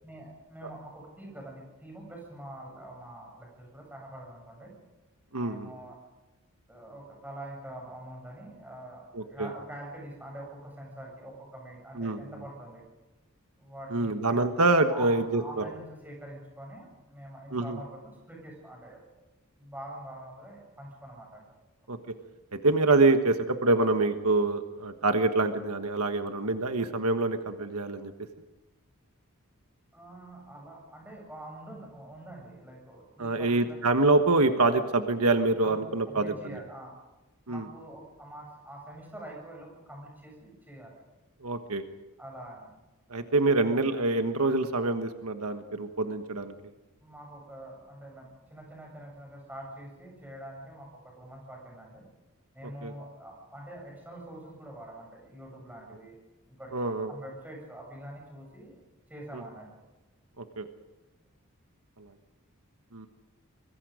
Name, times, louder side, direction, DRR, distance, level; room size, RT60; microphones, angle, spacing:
voice 1, 0.0-4.7 5.4-6.0 6.7-9.0 9.3-12.8 13.6-14.4 14.9-19.0 19.6-21.6 29.9-33.8 35.6-35.8 36.1-36.9 37.4-41.0 42.2-42.7 43.6-43.7 47.0-52.0 52.5-56.2 56.5-56.8 57.1-58.8 59.1-59.7, right 1 dB, 10° right, -1 dB, 7.5 m, -45 dB
voice 2, 5.3-5.7 9.1-9.5 12.0-12.2 13.9-15.6 17.5-17.8 21.9-22.0 22.6-28.1 33.2-36.6 37.5-37.7 41.4-41.8 43.1-46.5 52.8-52.9 56.7-57.1 60.4-60.7 62.0-62.1 62.9-63.1, right 2 dB, 85° right, 7 dB, 1.5 m, -26 dB
24.0 x 23.0 x 5.1 m, 1.1 s
head